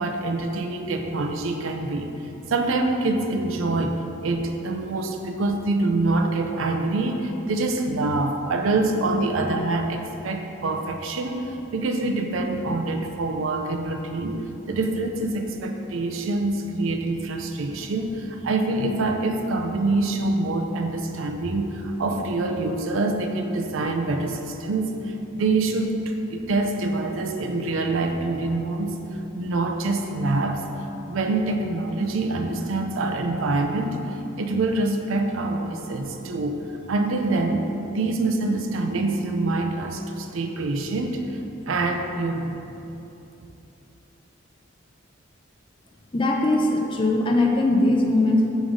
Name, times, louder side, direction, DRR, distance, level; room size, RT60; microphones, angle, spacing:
voice 1, 0.0-2.1 2.5-36.6 36.9-41.4 41.7-42.6, right 2 dB, 80° right, 5 dB, 0.5 m, -25 dB
voice 2, 46.1-48.5, left 2 dB, 25° left, 1 dB, 0.5 m, -20 dB
5.1 x 3.7 x 5.2 m, 2.9 s
head